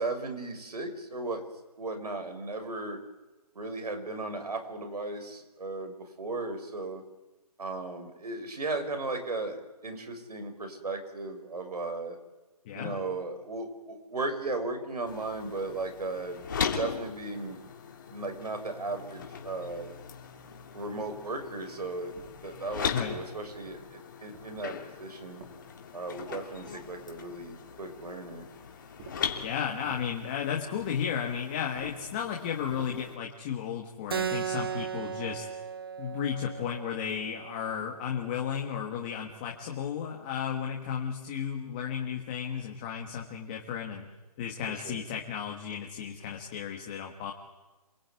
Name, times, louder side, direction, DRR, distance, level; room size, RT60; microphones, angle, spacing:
voice 1, 0.0-1.4 1.8-3.0 3.5-7.0 7.6-9.6 9.8-12.2 12.7-16.5 16.8-17.6 18.1-19.9 20.7-22.1 22.4-25.4 25.9-28.4 44.8-45.0, right 2 dB, 75° right, 5 dB, 6.7 m, -36 dB
voice 2, 12.6-13.0 22.9-23.2 29.4-35.4 36.0-44.1 44.4-47.3, left 8 dB, 15° left, 1 dB, 1.5 m, -34 dB
sound 1, 15.1-33.2, left 6 dB, 30° left, 2.9 m, -40 dB
sound 2, 22.2-22.6 23.2-23.8 24.3-24.9 25.4-26.1 26.7-27.4 29.0-29.4 29.9-30.2 30.8-31.2 31.7-32.2 32.7-33.1, right 3 dB, 20° right, 3.0 m, -51 dB
Keyboard (musical), 34.1-39.2, right 7 dB, 35° right, 0.8 m, -37 dB
27.0 x 20.0 x 9.5 m, 1.1 s
hypercardioid pair, 175°, 20 cm